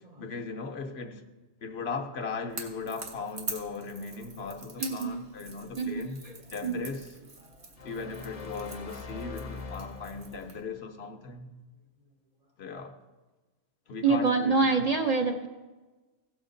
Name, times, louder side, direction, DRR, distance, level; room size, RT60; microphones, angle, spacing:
voice 1, 0.2-1.2 1.6-6.2 6.5-7.1 7.8-11.5 12.6-13.0 13.9-14.9, left 4 dB, 65° left, 1.0 m, -38 dB
Crackle / Crack, 2.5-10.6, right 3 dB, 65° right, 1.6 m, -44 dB
voice 2, 4.8-5.3 5.7-6.3 6.6-6.9 14.0-15.5, right 4 dB, 40° right, 0.6 m, -26 dB
sound 1, 7.8-10.5, left 3 dB, 35° left, 0.8 m, -42 dB
16.5 x 7.1 x 3.8 m
omnidirectional pair, 1.2 m